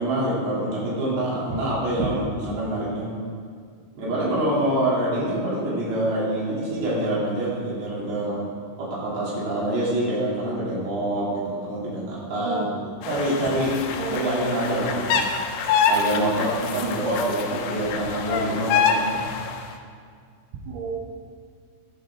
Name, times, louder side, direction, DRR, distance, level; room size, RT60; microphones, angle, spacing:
voice 1, 0.0-3.1 4.0-8.4 8.8-12.7 13.1-13.7 14.1-15.3 15.8-19.2, right 1 dB, 50° right, -7 dB, 4.7 m, -26 dB
voice 2, 12.4-12.8 14.0-14.3 16.8-17.0 20.7-21.0, right 4 dB, 75° right, 0 dB, 2.4 m, -31 dB
sound 1, 13.0-19.7, left 6 dB, 85° left, 3.1 m, -26 dB
13.0 x 11.5 x 3.7 m, 2.1 s
omnidirectional pair, 5.9 m